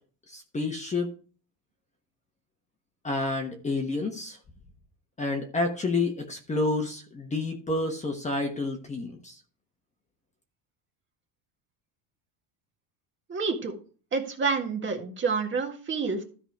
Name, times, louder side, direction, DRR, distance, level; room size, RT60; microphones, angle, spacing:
voice 1, 0.3-1.1 3.0-4.4 5.2-9.3, left 2 dB, 15° left, 3 dB, 1.2 m, -29 dB
voice 2, 13.3-13.7 14.1-16.2, right 4 dB, 25° right, 3 dB, 1.8 m, -28 dB
13.0 x 5.0 x 4.7 m, 0.40 s
cardioid pair, 140°, 43 cm